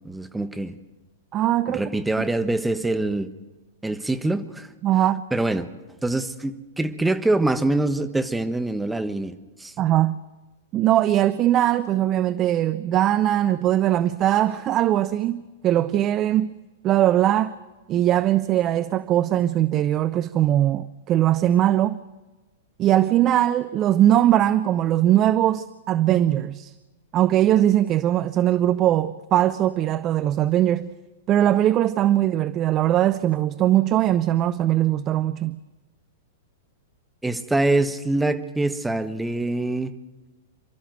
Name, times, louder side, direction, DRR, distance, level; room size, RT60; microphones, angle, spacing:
voice 1, 0.0-0.8 1.7-3.3 3.8-4.7 5.3-5.7 6.0-9.7 37.2-39.9, right 2 dB, 5° right, 1.3 m, -24 dB
voice 2, 1.3-1.8 4.8-5.2 9.8-10.2 10.7-16.5 16.8-17.6 17.9-22.0 22.8-26.7 27.1-30.9 31.3-35.6, right 12 dB, 35° right, 0.6 m, -20 dB
28.5 x 13.0 x 7.9 m
figure-of-eight pair, 105°, 0 cm